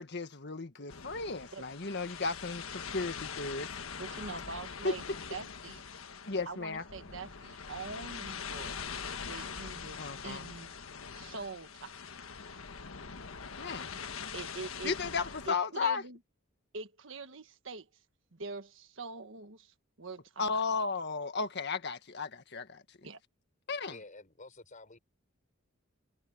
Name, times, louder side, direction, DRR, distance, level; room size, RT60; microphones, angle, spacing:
voice 1, 0.0-2.6 2.9-3.7 4.8-5.0 6.2-6.8 10.0-10.5 13.6-13.9 14.8-16.0 20.4-22.8 23.7-23.9, left 4 dB, 55° left, 1.7 m, -34 dB
sound 1, 0.9-15.5, left 6 dB, 85° left, 1.5 m, -43 dB
voice 2, 4.0-5.0 5.3-5.8 6.4-8.7 9.2-10.7 11.1-12.0 14.3-14.9 15.5-16.2 16.7-17.9 18.3-20.7 23.0-23.2, right 4 dB, 65° right, 1.5 m, -44 dB
voice 3, 23.9-25.0, left 2 dB, 40° left, 5.1 m, -50 dB
head